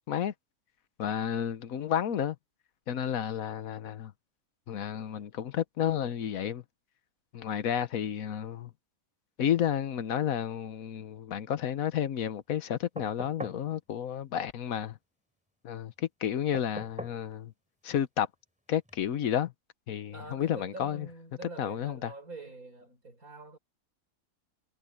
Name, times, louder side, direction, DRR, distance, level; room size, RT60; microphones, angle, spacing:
voice 1, 1.0-2.4 2.9-4.1 4.7-6.6 7.3-8.7 9.4-15.0 15.6-17.5 17.8-18.3 18.7-19.5 19.9-21.1 21.6-22.1, left 9 dB, 70° left, 1.4 m, -31 dB
sound 1, 13.0-13.7 16.5-17.2 18.9-19.0, equal, 5° right, 5.0 m, -41 dB
voice 2, 20.1-23.6, right 2 dB, 70° right, 5.6 m, -46 dB
omnidirectional pair, 1.5 m